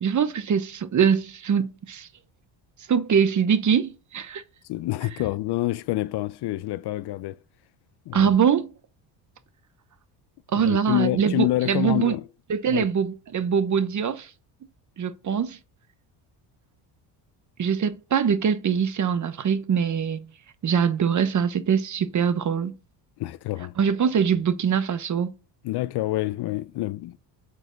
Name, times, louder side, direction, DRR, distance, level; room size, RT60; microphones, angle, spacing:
voice 1, 0.0-2.1 2.9-4.4 8.1-8.7 10.5-12.1 12.5-14.3 15.0-15.6 17.6-20.3 20.6-22.7 23.8-25.3, right 7 dB, 40° right, 1.0 m, -23 dB
voice 2, 4.7-7.4 8.1-8.3 10.5-12.2 12.7-12.9 23.2-23.8 25.6-27.2, left 16 dB, 55° left, 0.6 m, -27 dB
7.9 x 5.1 x 5.7 m
supercardioid pair, 85°, 48 cm